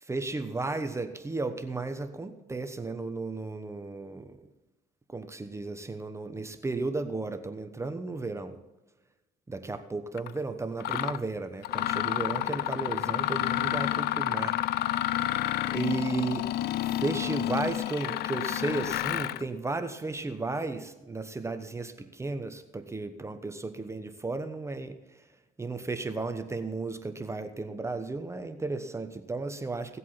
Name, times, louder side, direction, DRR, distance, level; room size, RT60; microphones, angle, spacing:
voice 1, 0.0-4.4 5.1-8.6 9.5-14.6 15.7-16.5 16.8-25.2 25.6-30.0, right 3 dB, 15° right, 8 dB, 1.1 m, -34 dB
Mechanisms, 10.2-10.3 10.8-11.2 11.6-19.4, left 13 dB, 70° left, 0.5 m, -30 dB
17.5 x 8.3 x 5.7 m, 1.1 s
cardioid pair, 110°, 17 cm